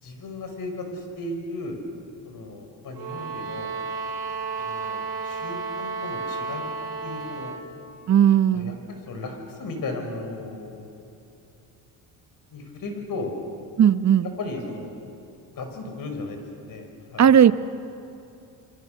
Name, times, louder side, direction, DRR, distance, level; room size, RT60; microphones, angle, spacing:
voice 1, 0.0-1.8 2.2-3.7 4.6-6.6 7.0-7.6 8.5-10.9 12.5-13.3 14.4-14.9 15.6-17.3, left 2 dB, 55° left, 4 dB, 5.8 m, -35 dB
sound 1, 2.9-7.7, right 4 dB, 65° right, 5.8 m, -32 dB
voice 2, 8.1-8.8 13.8-14.3 17.2-17.5, right 9 dB, 40° right, 13 dB, 1.0 m, -16 dB
29.0 x 23.5 x 6.8 m, 2.7 s
supercardioid pair, 75°, 41 cm